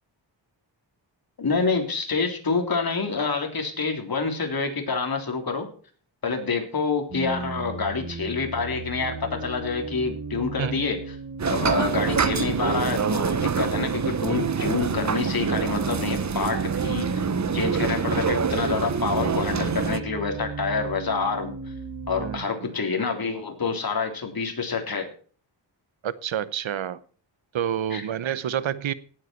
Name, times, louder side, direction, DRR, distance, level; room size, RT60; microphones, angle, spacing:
voice 1, 1.4-5.7 6.2-11.0 11.5-17.1 17.5-21.5 22.1-25.1 27.9-28.1, left 4 dB, 50° left, 4 dB, 3.5 m, -27 dB
sound 1, 7.1-22.4, right 3 dB, 55° right, 3.2 m, -36 dB
sound 2, 11.4-20.0, right 6 dB, 40° right, 0.9 m, -26 dB
voice 2, 22.2-22.7 26.0-27.0 27.5-28.9, right 9 dB, 80° right, 17 dB, 1.0 m, -28 dB
17.5 x 8.1 x 4.5 m, 0.42 s
wide cardioid pair, 90°, 46 cm